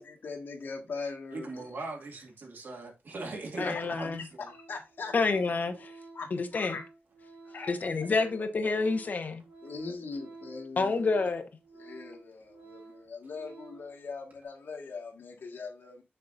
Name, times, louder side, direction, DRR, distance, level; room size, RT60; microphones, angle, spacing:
voice 1, 0.0-1.7 3.6-4.1 4.7-5.2 6.1-6.8 7.5-7.8 9.6-11.0 11.7-16.0, left 4 dB, 80° left, 1.8 m, -41 dB
voice 2, 1.3-4.5, right 3 dB, 65° right, 2.1 m, -40 dB
voice 3, 3.6-4.2 5.1-5.9 6.3-6.7 7.7-9.4 10.8-11.4, left 4 dB, 55° left, 1.1 m, -28 dB
Organ, 3.9-4.1 4.4-14.0 14.3-14.4, right 3 dB, 50° right, 1.9 m, -52 dB
6.6 x 6.5 x 2.6 m
wide cardioid pair, 155°, 4 cm